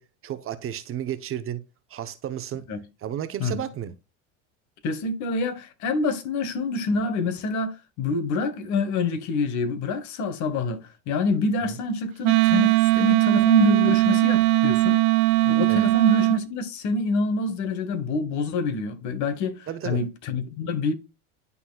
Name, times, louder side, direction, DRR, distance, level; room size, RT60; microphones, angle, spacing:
voice 1, 0.0-1.6 1.9-2.7 3.0-3.9 15.7-15.9 19.7-20.0, right 10 dB, 35° right, 0.9 m, -32 dB
voice 2, 4.8-15.0 15.4-20.9, left 3 dB, 55° left, 1.5 m, -26 dB
Wind instrument woodwind instrument, 12.2-16.4, right 20 dB, 55° right, 0.5 m, -19 dB
11.5 x 4.2 x 2.4 m
hypercardioid pair, 100°, 36 cm